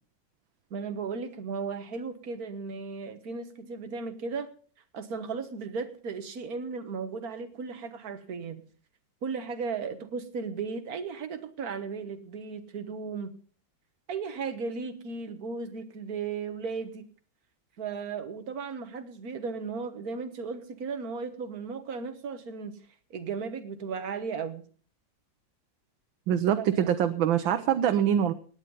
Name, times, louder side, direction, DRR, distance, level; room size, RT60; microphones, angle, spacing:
voice 1, 0.7-4.5 4.9-8.6 9.2-13.3 14.1-17.1 17.8-22.8 23.1-24.7 26.6-26.9, right 5 dB, 55° right, 8 dB, 1.7 m, -35 dB
voice 2, 26.3-28.3, right 9 dB, 90° right, 8 dB, 1.6 m, -24 dB
17.5 x 9.7 x 5.5 m, 0.43 s
omnidirectional pair, 2.1 m